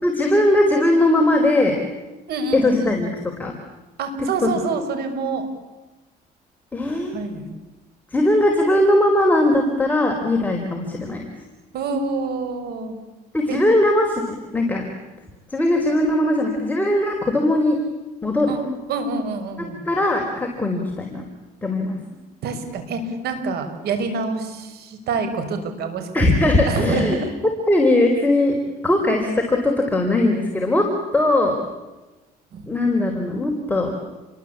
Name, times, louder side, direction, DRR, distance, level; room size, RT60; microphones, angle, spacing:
voice 1, 0.0-1.8 2.5-3.5 4.2-4.5 6.7-7.2 8.1-11.3 13.3-14.9 15.5-17.8 18.2-18.6 19.6-21.2 21.6-22.0 26.1-28.6 28.8-31.6 32.7-33.9, left 1 dB, 10° left, 1 dB, 4.6 m, -19 dB
voice 2, 2.3-2.9 4.0-5.5 7.1-7.4 11.7-13.0 13.5-13.6 18.5-18.6 18.9-19.9 22.4-26.1 26.4-27.3 32.5-32.7, right 3 dB, 70° right, 7 dB, 6.5 m, -26 dB
29.5 x 23.0 x 8.7 m, 1.1 s
cardioid pair, 110°, 17 cm